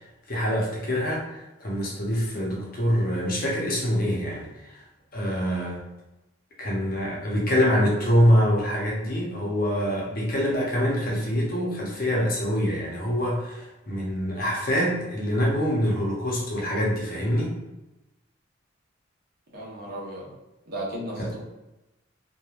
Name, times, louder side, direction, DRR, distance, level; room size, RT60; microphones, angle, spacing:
voice 1, 0.3-4.5 5.1-5.8 6.6-17.6 21.2-21.3, equal, 45° left, -3 dB, 0.6 m, -25 dB
voice 2, 19.5-20.3 20.7-21.4, right 1 dB, 50° right, -5 dB, 0.8 m, -35 dB
3.0 x 2.2 x 2.3 m, 0.99 s
head